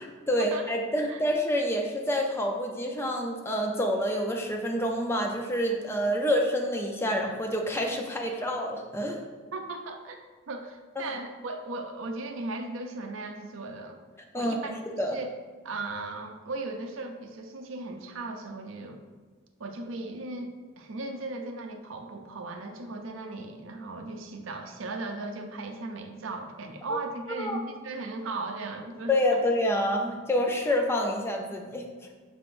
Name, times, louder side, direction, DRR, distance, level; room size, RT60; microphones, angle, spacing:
voice 1, 0.0-9.3 11.0-11.1 14.3-14.6 15.0-15.2 26.9-27.0 27.3-27.6 29.1-31.9, equal, 10° left, 1 dB, 0.4 m, -27 dB
voice 2, 9.5-10.2 10.5-14.0 14.3-14.7 15.1-15.3 15.6-19.0 19.6-29.4, right 2 dB, 70° right, 4 dB, 0.5 m, -37 dB
5.4 x 3.4 x 2.5 m, 1.4 s
head